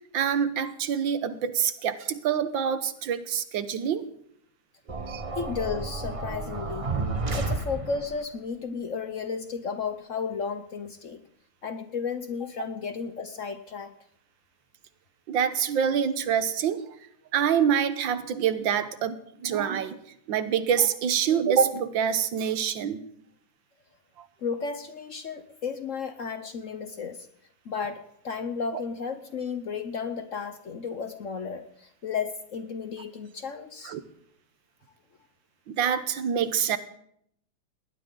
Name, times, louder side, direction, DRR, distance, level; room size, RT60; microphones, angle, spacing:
voice 1, 0.1-4.1 5.1-5.2 15.3-16.8 17.3-20.0 20.3-23.0 33.9-34.0 35.7-36.8, right 8 dB, 80° right, 12 dB, 1.7 m, -26 dB
sound 1, 4.9-8.2, right 3 dB, 25° right, 0.7 m, -31 dB
voice 2, 5.3-6.9 7.4-11.2 11.6-13.9 24.4-27.3 27.6-34.0, left 5 dB, 55° left, 9 dB, 1.0 m, -33 dB
19.5 x 19.0 x 3.8 m, 0.70 s
omnidirectional pair, 2.1 m